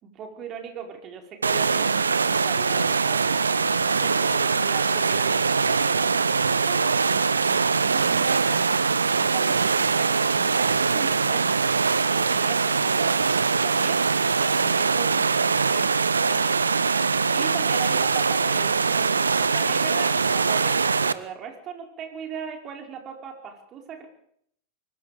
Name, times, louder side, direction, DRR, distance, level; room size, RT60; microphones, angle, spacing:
voice 1, 0.0-11.5 11.8-14.0 14.4-16.8 17.3-24.1, right 7 dB, 30° right, 3 dB, 5.1 m, -39 dB
sound 1, 1.4-21.1, right 5 dB, 75° right, 0.9 m, -22 dB
24.0 x 22.0 x 5.2 m, 0.68 s
figure-of-eight pair, 90°, 0 cm